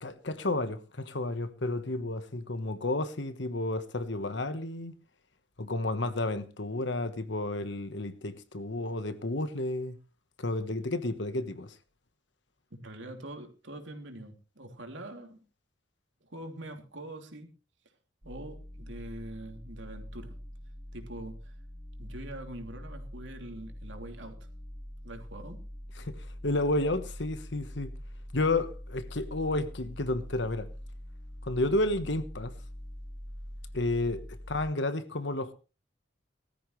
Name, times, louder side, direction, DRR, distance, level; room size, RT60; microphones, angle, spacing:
voice 1, 0.0-4.9 5.6-10.0 10.4-11.7 26.0-26.2 26.4-27.9 28.3-30.7 31.4-32.5 33.7-34.2 34.5-35.5, left 2 dB, 70° left, 1.3 m, -31 dB
voice 2, 12.7-15.4 16.2-17.5 18.2-20.4 20.9-21.5 22.0-24.4 25.0-25.6, right 1 dB, 80° right, 3.1 m, -44 dB
sound 1, 18.2-34.7, equal, 55° right, 4.5 m, -44 dB
19.0 x 13.5 x 3.3 m
head